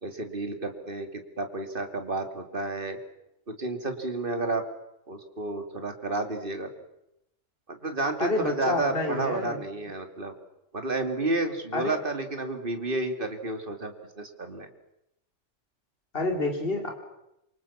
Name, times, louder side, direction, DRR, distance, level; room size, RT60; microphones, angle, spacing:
voice 1, 0.0-3.0 3.5-4.6 5.1-6.7 7.7-10.3 10.7-14.7, right 2 dB, 40° right, 6 dB, 2.8 m, -31 dB
voice 2, 8.2-9.6 11.7-12.0 16.1-16.9, left 2 dB, 45° left, 4 dB, 3.5 m, -28 dB
27.0 x 24.5 x 7.3 m, 0.87 s
omnidirectional pair, 1.3 m